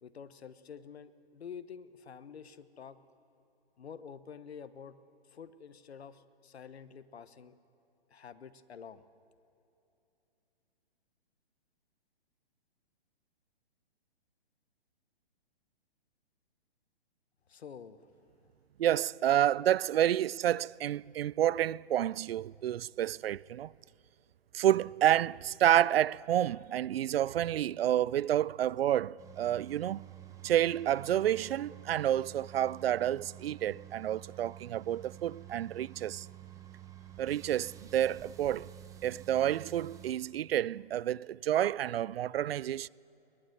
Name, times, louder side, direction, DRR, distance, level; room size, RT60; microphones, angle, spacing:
voice 1, 0.0-3.0 3.8-5.0 5.3-7.5 8.1-9.0 17.5-18.1, left 7 dB, 85° left, 1.2 m, -48 dB
voice 2, 18.8-23.7 24.5-30.0 30.4-36.3 37.2-38.7 39.0-42.9, right 11 dB, 70° right, 0.5 m, -29 dB
sound 1, 29.2-40.1, right 12 dB, 10° right, 1.0 m, -50 dB
23.0 x 18.5 x 7.9 m
hypercardioid pair, 150°, 31 cm